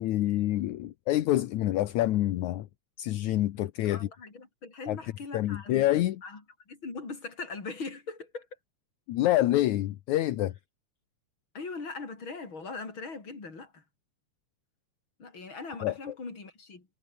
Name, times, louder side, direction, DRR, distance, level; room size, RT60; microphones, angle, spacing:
voice 1, 0.0-2.7 3.0-4.1 4.9-5.0 5.3-6.2 9.1-10.5 15.8-15.9, left 14 dB, 75° left, 2.4 m, -27 dB
voice 2, 3.6-5.9 6.2-8.5 11.5-13.8 15.2-16.9, left 4 dB, 40° left, 5.5 m, -41 dB
omnidirectional pair, 3.5 m